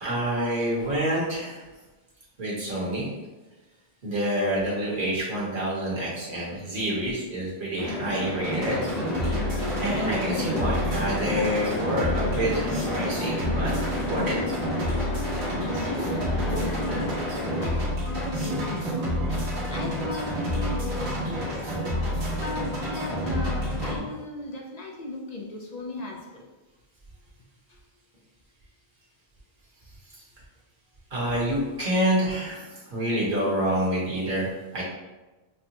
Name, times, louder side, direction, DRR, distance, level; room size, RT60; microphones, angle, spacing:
voice 1, 0.0-1.6 2.4-3.1 4.0-8.8 9.8-14.4 30.1-30.2 31.1-34.8, equal, 50° right, -6 dB, 1.3 m, -27 dB
sound 1, 7.8-17.7, left 1 dB, 85° left, 1.3 m, -32 dB
sound 2, 8.4-24.0, equal, 80° right, 1.3 m, -29 dB
voice 2, 15.7-17.1 17.6-21.6 21.9-22.0 22.4-26.5 27.7-27.8, left 2 dB, 50° left, -1 dB, 0.5 m, -37 dB
5.4 x 2.1 x 2.8 m, 1.2 s
omnidirectional pair, 1.1 m